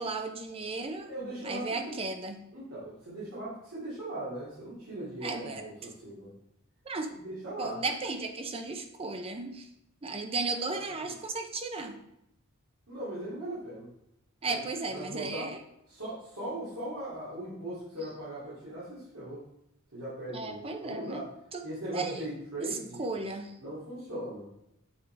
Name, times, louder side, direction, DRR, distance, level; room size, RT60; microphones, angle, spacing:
voice 1, 0.0-1.1 1.4-2.4 5.2-5.7 6.8-7.1 7.6-9.7 10.0-12.0 14.4-15.6 18.0-18.1 20.3-21.2 21.5-21.6 21.9-22.3 22.6-23.6, right 3 dB, 25° right, 6 dB, 0.5 m, -35 dB
voice 2, 1.0-1.9 2.5-6.3 7.1-7.8 10.6-11.1 12.9-13.9 14.4-14.6 14.9-15.5 15.9-19.4 19.9-21.3 21.6-23.1 23.6-24.7, right 1 dB, 80° right, -10 dB, 2.4 m, -39 dB
7.2 x 4.9 x 3.3 m, 0.80 s
head